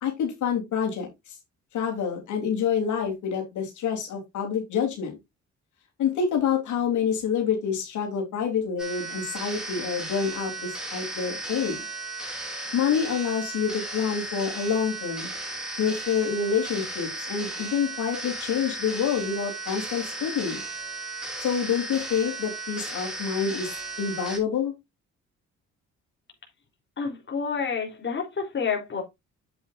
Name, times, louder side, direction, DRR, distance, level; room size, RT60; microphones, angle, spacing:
voice 1, 0.0-1.3 1.7-5.2 6.0-11.9 12.7-15.3 15.8-20.6 21.4-24.7, left 7 dB, 75° left, 3.6 m, -27 dB
sound 1, 8.8-24.4, right 2 dB, ahead, 4.2 m, -35 dB
voice 2, 27.0-29.0, left 5 dB, 40° left, 3.7 m, -29 dB
8.6 x 8.5 x 2.6 m
cardioid pair, 90°, 30 cm